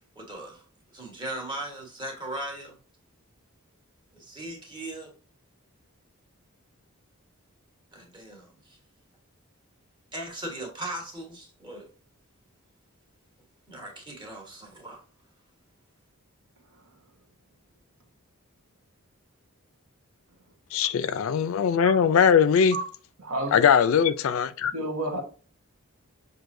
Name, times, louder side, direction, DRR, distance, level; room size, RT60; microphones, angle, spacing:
voice 1, 0.2-0.6 0.9-2.8 4.1-5.1 7.9-8.8 10.1-11.9 13.7-15.0, right 1 dB, 20° right, 1.2 m, -38 dB
voice 2, 20.7-22.8 23.5-24.7, left 7 dB, 65° left, 0.3 m, -21 dB
voice 3, 23.2-23.6 24.7-25.2, right 1 dB, 80° right, 1.0 m, -30 dB
6.2 x 2.6 x 2.6 m
head